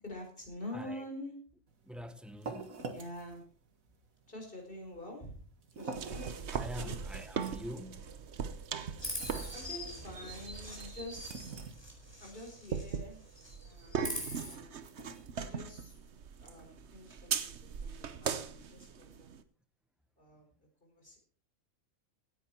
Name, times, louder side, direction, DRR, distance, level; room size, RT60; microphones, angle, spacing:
voice 1, 0.0-1.3 2.9-3.4 4.3-5.4 5.8-7.0 9.5-11.6 12.2-13.3 13.6-14.8 15.4-16.0 16.4-19.3 20.2-20.5 20.8-21.2, left 1 dB, 40° left, 4.8 m, -47 dB
voice 2, 0.7-1.0 1.9-2.8 6.5-8.1, left 1 dB, ahead, 1.0 m, -44 dB
sound 1, 1.7-16.7, right 4 dB, 75° right, 2.0 m, -49 dB
sound 2, 5.9-19.4, right 6 dB, 55° right, 1.2 m, -40 dB
Chirp tweet, 9.0-13.0 13.3-14.5, left 1 dB, 15° left, 4.6 m, -43 dB
16.5 x 9.8 x 4.5 m
omnidirectional pair, 1.4 m